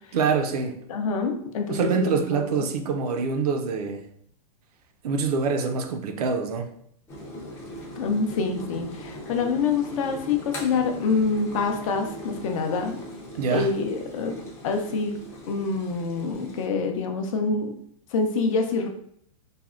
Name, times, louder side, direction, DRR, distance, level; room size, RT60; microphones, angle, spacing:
voice 1, 0.1-0.8 1.7-4.0 5.0-6.7 13.4-13.7, right 5 dB, 85° right, 0.4 m, -25 dB
voice 2, 0.9-2.0 8.0-13.0 13.5-14.4 14.6-15.1 15.5-17.7 18.1-18.9, left 4 dB, 60° left, 0.5 m, -26 dB
sound 1, 7.1-16.7, equal, 15° left, 0.4 m, -40 dB
3.4 x 2.1 x 2.3 m
supercardioid pair, 155°, 19 cm